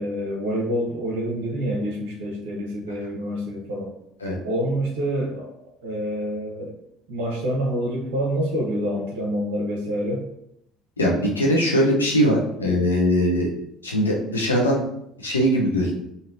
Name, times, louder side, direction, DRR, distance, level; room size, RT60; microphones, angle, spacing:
voice 1, 0.0-3.9 4.4-5.5 5.8-6.7 7.1-10.2, equal, 70° right, -2 dB, 0.8 m, -27 dB
voice 2, 11.0-13.5 13.8-14.8 15.2-15.9, equal, 90° left, -2 dB, 0.6 m, -21 dB
3.2 x 2.7 x 2.5 m, 0.78 s
figure-of-eight pair, 60°, 0 cm